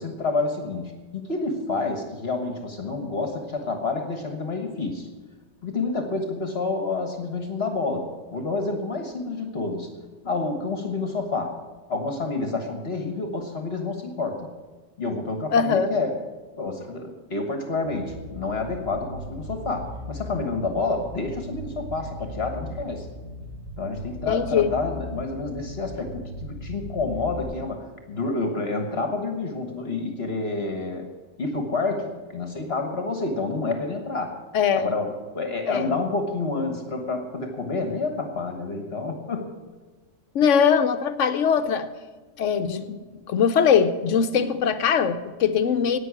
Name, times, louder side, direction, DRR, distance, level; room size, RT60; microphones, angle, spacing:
voice 1, 0.0-5.1 5.6-9.9 10.2-11.6 11.9-14.5 15.0-16.2 16.6-23.1 23.8-31.1 31.4-34.4 34.8-39.5, left 3 dB, 50° left, 5 dB, 1.5 m, -29 dB
voice 2, 15.5-15.9 24.3-24.7 34.5-34.9 35.7-35.9 40.3-41.9 42.4-43.0 43.3-46.0, left 7 dB, 70° left, 11 dB, 1.0 m, -21 dB
Bass guitar, 17.8-27.4, equal, 85° right, 5.5 m, -38 dB
11.0 x 8.9 x 9.7 m, 1.3 s
omnidirectional pair, 1.3 m